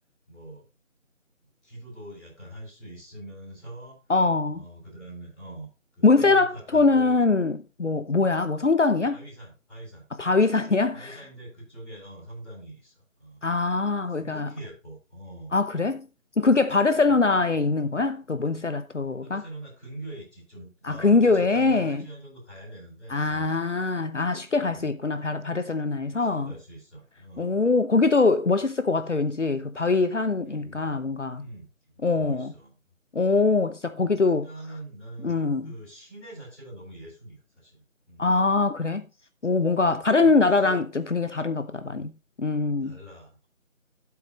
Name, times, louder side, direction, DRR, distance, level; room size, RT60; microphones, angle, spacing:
voice 1, 0.3-0.6 1.6-4.0 4.5-5.7 6.0-7.2 9.1-10.0 10.9-13.4 13.8-15.5 16.9-17.2 19.2-23.6 24.6-24.9 25.9-27.6 30.4-31.0 31.3-32.7 34.1-37.8 38.1-38.3 40.2-40.8 41.9-42.1 42.8-43.4, right 1 dB, ahead, 4.5 m, -43 dB
voice 2, 4.1-4.6 6.0-9.2 10.2-11.2 13.4-14.5 15.5-16.1 16.4-19.4 20.8-22.0 23.1-26.5 27.4-31.5 32.0-32.5 33.1-34.5 35.2-35.7 38.2-39.0 39.4-40.8 41.1-42.1 42.4-43.0, left 3 dB, 60° left, 0.9 m, -23 dB
12.0 x 8.2 x 3.1 m
figure-of-eight pair, 170°, 40 cm